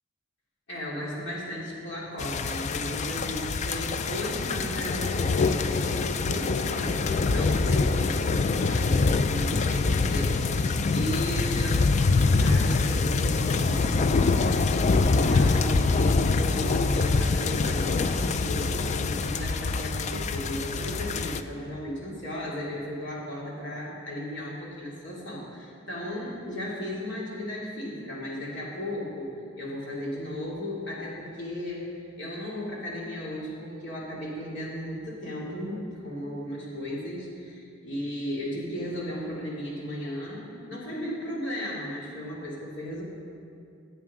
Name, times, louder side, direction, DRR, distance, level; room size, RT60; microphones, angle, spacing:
voice 1, 0.7-29.3 29.6-43.0, equal, 60° left, -5 dB, 2.7 m, -35 dB
sound 1, 2.2-21.4, left 3 dB, 35° left, 0.3 m, -25 dB
15.5 x 8.0 x 3.7 m, 2.4 s
head